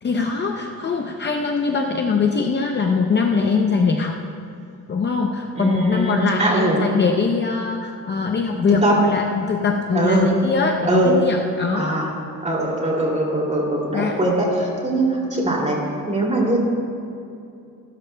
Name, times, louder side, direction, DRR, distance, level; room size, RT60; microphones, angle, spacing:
voice 1, 0.0-4.2 4.9-12.0 13.9-14.2, left 4 dB, 35° left, 2 dB, 0.7 m, -22 dB
voice 2, 5.5-6.8 8.7-9.0 9.9-10.4 10.8-11.2 11.7-12.1 12.4-15.8 16.1-16.6, right 2 dB, 20° right, -2 dB, 2.7 m, -21 dB
25.5 x 12.5 x 2.3 m, 2.6 s
cardioid pair, 160°, 33 cm